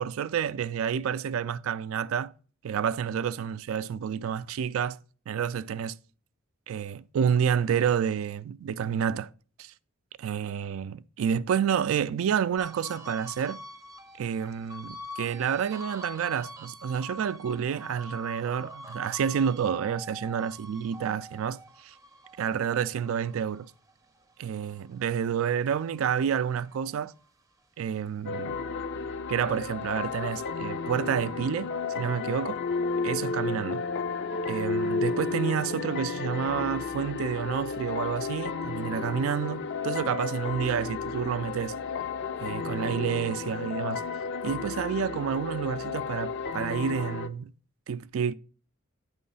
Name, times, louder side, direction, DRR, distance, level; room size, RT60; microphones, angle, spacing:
voice 1, 0.0-2.3 2.6-5.0 5.3-6.0 6.7-9.3 9.6-9.7 10.2-13.6 14.2-21.9 22.4-23.7 24.4-27.1 27.8-28.6 29.3-31.7 32.0-32.6 33.0-33.8 34.5-41.7 42.4-44.0 44.4-47.5 47.9-48.3, right 8 dB, 80° right, 0.3 m, -29 dB
sound 1, 12.6-25.2 25.6-27.3, left 1 dB, 15° right, 0.5 m, -45 dB
sound 2, 28.3-47.3, left 4 dB, 60° left, 0.5 m, -32 dB
9.3 x 3.1 x 5.4 m
head